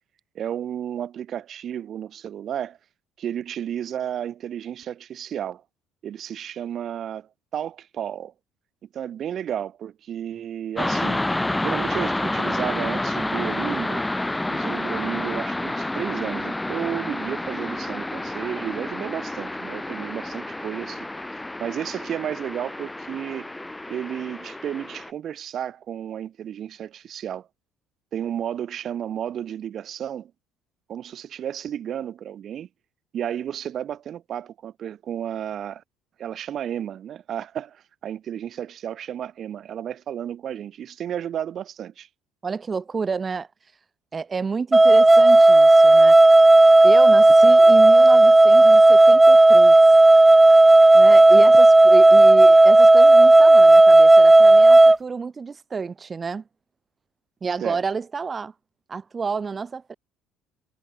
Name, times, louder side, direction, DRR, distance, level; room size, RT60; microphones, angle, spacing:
voice 1, 0.3-2.8 3.2-5.6 6.0-8.3 8.9-11.2 11.6-14.1 14.5-21.1 21.6-23.5 23.9-27.5 28.1-30.3 30.9-32.7 33.1-35.8 36.2-42.1 57.6-57.8, right 10 dB, 50° right, 5.8 m, -32 dB
sound 1, 10.8-25.1, left 1 dB, 10° left, 3.6 m, -29 dB
voice 2, 42.4-43.5 44.1-46.2 46.8-49.8 50.9-56.4 57.4-58.5 58.9-59.9, right 5 dB, 30° right, 5.2 m, -29 dB
sound 2, 44.7-55.0, right 2 dB, 10° right, 0.8 m, -11 dB
supercardioid pair, 100°, 0 cm